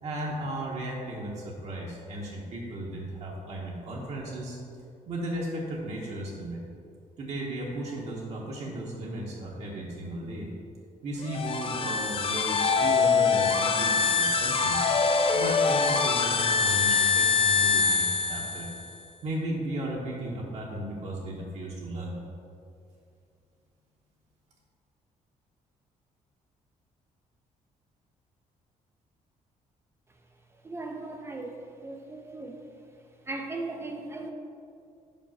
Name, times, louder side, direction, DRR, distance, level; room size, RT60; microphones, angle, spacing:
voice 1, 0.0-4.6 5.1-6.6 7.2-10.5 11.0-14.8 15.3-18.7 19.2-22.1, right 1 dB, 55° right, -3 dB, 1.0 m, -35 dB
sound 1, 11.2-18.9, left 5 dB, 40° left, 0.4 m, -24 dB
voice 2, 30.5-31.6 31.8-32.6 33.3-34.3, right 2 dB, 20° right, 2 dB, 0.5 m, -37 dB
5.2 x 5.0 x 5.7 m, 2.4 s
cardioid pair, 155°, 14 cm